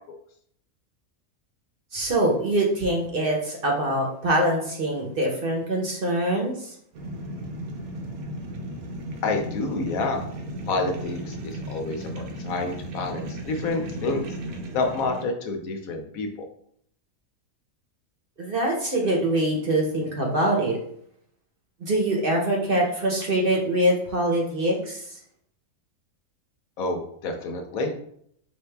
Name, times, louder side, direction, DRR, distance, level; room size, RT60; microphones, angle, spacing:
voice 1, 1.9-6.7 18.4-20.8 21.8-25.2, right 1 dB, 45° right, 0 dB, 0.9 m, -24 dB
sound 1, 6.9-15.3, right 1 dB, 90° right, 1.2 m, -35 dB
voice 2, 9.2-10.2 10.7-14.3 14.7-16.3 26.8-27.9, left 3 dB, 80° left, 4 dB, 1.2 m, -28 dB
5.1 x 2.7 x 3.3 m, 0.68 s
omnidirectional pair, 1.5 m